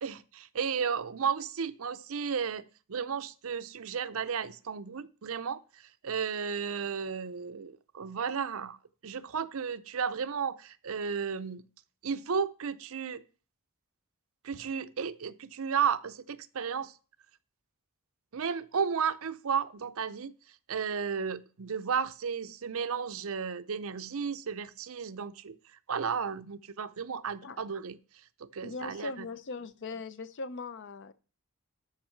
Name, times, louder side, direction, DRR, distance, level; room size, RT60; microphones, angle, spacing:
voice 1, 0.0-8.8 9.0-11.6 12.0-13.2 14.4-16.9 18.3-20.3 20.7-25.6 25.9-28.0 28.4-29.3, right 6 dB, 65° right, 0.6 m, -33 dB
voice 2, 28.6-31.1, left 3 dB, 55° left, 0.6 m, -39 dB
13.0 x 5.5 x 4.5 m
head